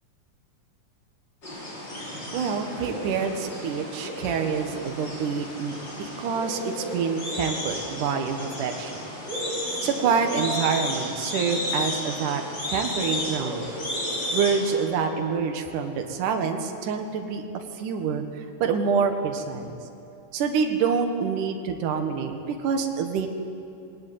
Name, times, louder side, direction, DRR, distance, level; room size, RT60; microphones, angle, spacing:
sound 1, 1.4-14.8, left 1 dB, 30° left, 6.2 m, -33 dB
voice 1, 2.3-8.9 9.8-12.4 12.7-13.7 14.3-17.4 17.8-19.7 20.3-22.3 22.6-23.3, right 6 dB, 75° right, 5 dB, 2.9 m, -26 dB
21.0 x 19.5 x 9.3 m, 2.8 s
omnidirectional pair, 3.8 m